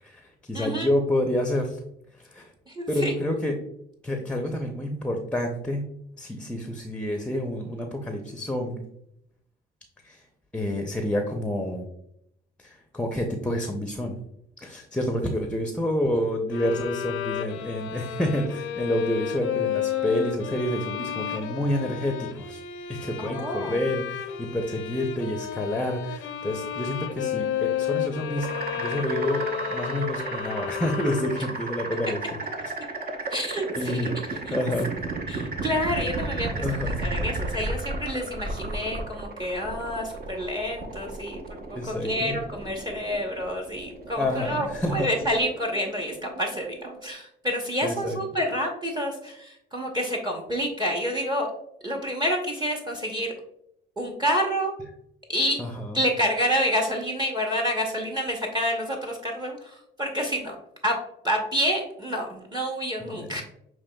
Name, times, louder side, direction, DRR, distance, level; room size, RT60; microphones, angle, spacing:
voice 1, 0.0-1.8 2.2-2.5 2.9-3.5 4.0-5.9 6.2-8.8 10.0-10.2 10.5-11.9 12.6-14.2 14.6-22.6 22.9-29.4 29.7-32.2 33.8-35.0 36.6-36.9 41.8-42.4 44.2-45.1 47.8-48.2 55.6-56.0 63.1-63.4, left 1 dB, 5° left, 4 dB, 0.6 m, -28 dB
voice 2, 0.5-0.9 2.7-3.1 23.2-23.8 33.3-34.1 34.5-34.6 35.3-41.6 41.9-51.5 51.8-53.3 54.0-54.7 55.3-55.6 55.9-60.6 60.8-60.9 61.2-63.4, equal, 20° right, 1 dB, 0.8 m, -28 dB
sound 1, 16.5-31.6, left 10 dB, 90° left, 0.5 m, -32 dB
sound 2, 28.4-47.1, right 2 dB, 50° right, 0.8 m, -34 dB
6.8 x 3.1 x 2.2 m, 0.75 s
cardioid pair, 90°, 20 cm